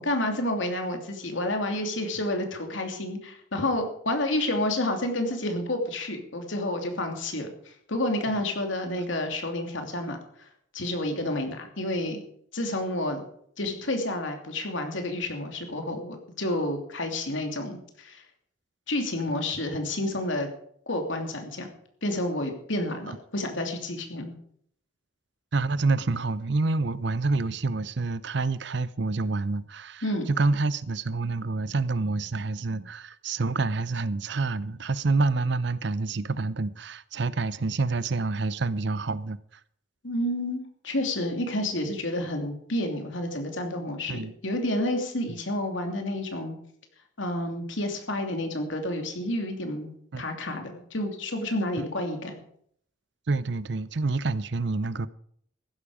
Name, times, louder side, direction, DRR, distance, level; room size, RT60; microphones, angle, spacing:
voice 1, 0.0-10.2 10.7-12.2 12.5-13.2 13.6-18.2 18.9-20.5 20.9-21.7 22.0-24.4 30.0-30.3 40.0-46.6 47.2-52.4, left 1 dB, 75° left, 2.9 m, -30 dB
voice 2, 25.5-39.4 44.1-44.3 45.3-45.4 50.1-50.2 51.8-51.9 53.3-55.1, right 3 dB, 60° right, 0.6 m, -27 dB
15.0 x 12.0 x 5.0 m
head